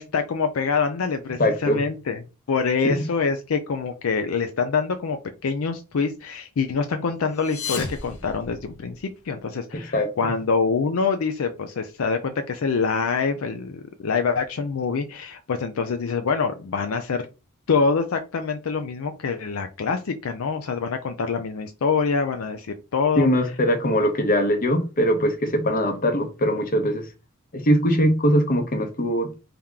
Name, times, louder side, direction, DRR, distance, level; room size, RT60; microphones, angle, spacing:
voice 1, 0.0-2.2 2.5-17.3 17.7-23.3, left 5 dB, 65° left, 0.5 m, -25 dB
voice 2, 1.4-1.8 2.8-3.1 9.7-10.1 23.2-27.1 27.5-29.3, equal, 40° left, 0.8 m, -21 dB
sound 1, 7.3-9.2, left 5 dB, 85° left, 0.9 m, -34 dB
3.5 x 2.9 x 3.6 m
head